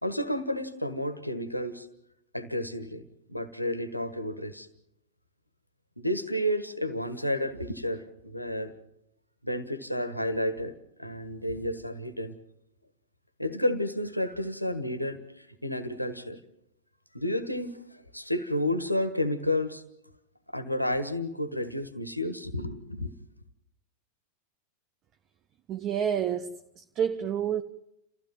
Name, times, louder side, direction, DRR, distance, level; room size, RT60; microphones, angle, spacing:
voice 1, 0.0-1.9 2.3-3.0 3.3-4.7 6.0-8.7 9.4-12.4 13.4-16.4 17.1-17.8 18.1-19.8 20.5-23.1, left 1 dB, 90° left, 1.5 m, -31 dB
voice 2, 25.7-27.6, right 8 dB, 35° right, 0.9 m, -29 dB
29.5 x 15.5 x 7.6 m
figure-of-eight pair, 90°, 0 cm